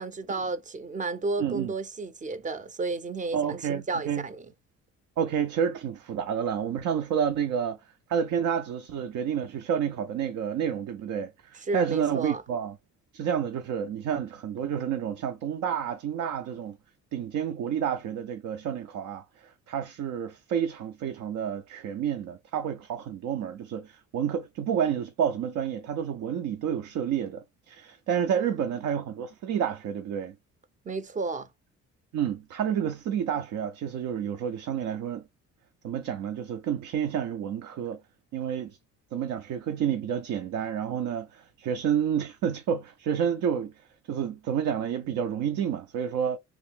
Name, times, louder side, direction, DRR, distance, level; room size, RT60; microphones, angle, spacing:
voice 1, 0.0-4.5 11.7-12.4 28.3-28.8 30.8-31.5, right 3 dB, 25° right, 0.6 m, -32 dB
voice 2, 1.4-1.7 3.3-4.2 5.2-7.8 8.1-12.8 13.1-16.8 17.1-30.3 32.1-35.2 35.8-38.0 38.3-38.8 39.1-46.4, right 8 dB, 75° right, 0.6 m, -30 dB
3.0 x 2.6 x 3.6 m
cardioid pair, 90°, 30 cm